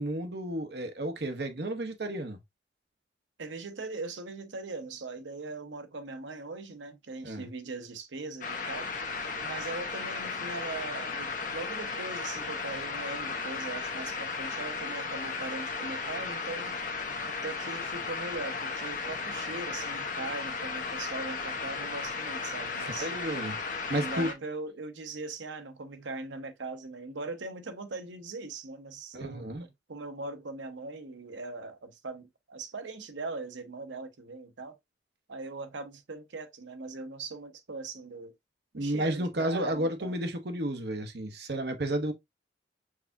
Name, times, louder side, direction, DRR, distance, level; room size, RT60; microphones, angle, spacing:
voice 1, 0.0-2.4 7.2-7.5 22.9-24.3 29.1-29.6 38.7-42.1, right 1 dB, 60° right, 1.0 m, -32 dB
voice 2, 3.4-8.9 9.4-16.8 17.3-23.1 23.9-29.5 29.9-34.8 35.3-38.3 38.7-40.1, right 3 dB, 85° right, 0.8 m, -40 dB
sound 1, 8.4-24.3, left 4 dB, 45° left, 1.1 m, -35 dB
4.7 x 3.5 x 2.7 m
head